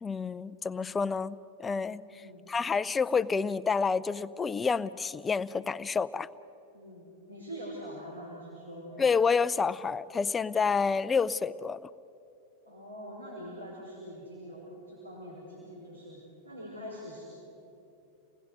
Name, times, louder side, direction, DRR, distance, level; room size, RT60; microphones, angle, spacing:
voice 1, 0.0-6.3 9.0-11.9, left 5 dB, 15° left, 16 dB, 0.5 m, -29 dB
voice 2, 2.1-2.4 6.7-9.1 12.6-17.2, equal, 80° right, -5 dB, 5.3 m, -44 dB
29.5 x 19.5 x 6.5 m, 2.8 s
figure-of-eight pair, 90°, 0 cm